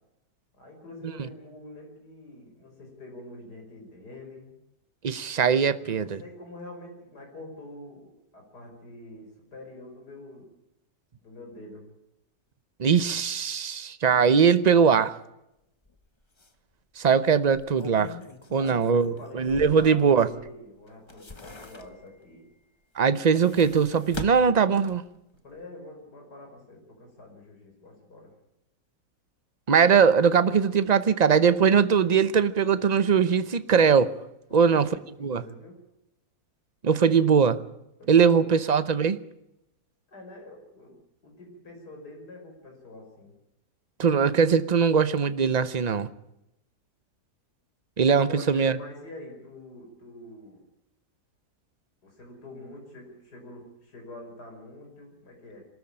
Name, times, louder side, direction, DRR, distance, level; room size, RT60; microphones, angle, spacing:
voice 1, 0.6-4.5 5.9-10.5 11.2-11.9 18.5-22.5 25.4-28.3 34.5-35.8 38.0-38.5 40.1-41.0 41.2-43.3 48.2-50.6 52.0-55.7, left 1 dB, 75° left, 5.8 m, -45 dB
voice 2, 5.0-6.2 12.8-15.1 17.0-18.1 18.5-20.3 23.0-25.0 29.7-34.1 34.5-34.9 35.2-35.4 36.8-37.6 38.1-39.2 44.0-46.1 48.0-48.7, right 6 dB, 40° right, 0.6 m, -21 dB
sound 1, 15.9-16.0 16.4-16.5 17.4-20.5 20.9-22.2 23.0-25.2 25.5-25.6, left 3 dB, 20° left, 1.2 m, -43 dB
23.0 x 13.5 x 8.7 m
omnidirectional pair, 1.7 m